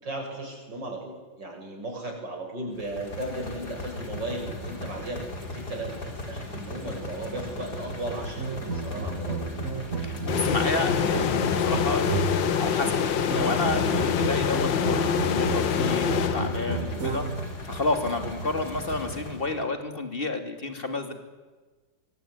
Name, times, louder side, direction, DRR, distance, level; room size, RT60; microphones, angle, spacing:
voice 1, 0.0-9.4 16.7-17.0, right 1 dB, 70° right, 1 dB, 8.3 m, -36 dB
sound 1, 2.8-19.6, left 1 dB, 60° left, 4.7 m, -37 dB
sound 2, 8.4-12.6 13.3-17.5, right 3 dB, 45° right, 3.5 m, -32 dB
voice 2, 10.0-12.1 12.6-13.0 13.3-17.3 17.6-21.1, left 2 dB, 30° left, 7 dB, 3.2 m, -30 dB
sound 3, 10.3-16.9, left 8 dB, 80° left, 2.0 m, -26 dB
24.0 x 24.0 x 9.8 m, 1.3 s
omnidirectional pair, 2.0 m